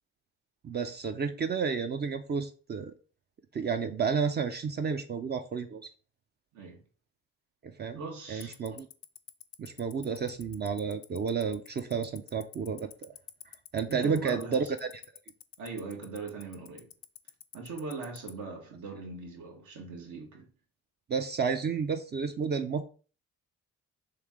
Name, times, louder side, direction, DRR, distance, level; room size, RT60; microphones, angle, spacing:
voice 1, 0.6-2.9 3.5-5.8 7.6-8.0 8.3-8.9 9.6-13.1 13.7-14.9 21.1-22.8, right 6 dB, 35° right, 0.4 m, -31 dB
voice 2, 7.9-8.6 13.9-14.7 15.6-16.9 17.5-20.5, right 4 dB, 75° right, 1.3 m, -40 dB
Tick-tock, 8.4-18.3, left 16 dB, 65° left, 0.4 m, -45 dB
3.2 x 3.2 x 3.5 m
cardioid pair, 90°, 30 cm